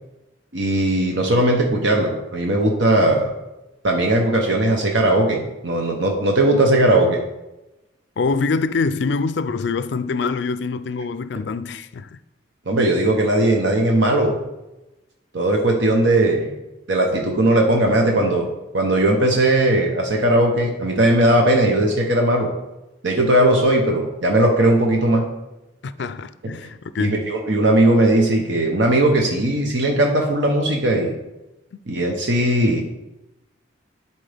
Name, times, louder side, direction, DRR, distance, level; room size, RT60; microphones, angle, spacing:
voice 1, 0.5-3.3 3.8-7.2 12.7-14.4 15.3-16.5 16.9-18.5 18.7-22.5 23.0-25.2 26.4-26.5 27.0-31.1 31.9-32.8, right 1 dB, 70° right, 0.9 m, -18 dB
voice 2, 8.2-12.2 25.8-27.3, left 4 dB, 60° left, 0.4 m, -24 dB
11.5 x 4.2 x 3.5 m
head